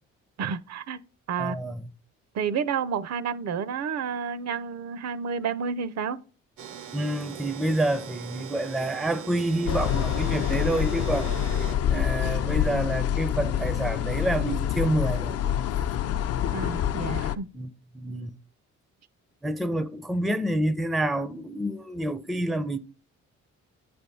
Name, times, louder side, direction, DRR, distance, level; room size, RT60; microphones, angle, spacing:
voice 1, 0.4-1.0 1.3-1.6 2.3-6.2 16.5-17.5, right 6 dB, 60° right, 0.6 m, -30 dB
voice 2, 1.4-1.8 6.9-15.4 17.5-18.3 19.4-22.8, right 1 dB, ahead, 0.4 m, -28 dB
sound 1, 6.6-11.7, right 9 dB, 85° right, 0.8 m, -40 dB
sound 2, 9.7-17.4, left 10 dB, 55° left, 0.5 m, -26 dB
8.0 x 3.4 x 5.4 m
cardioid pair, 90°, 30 cm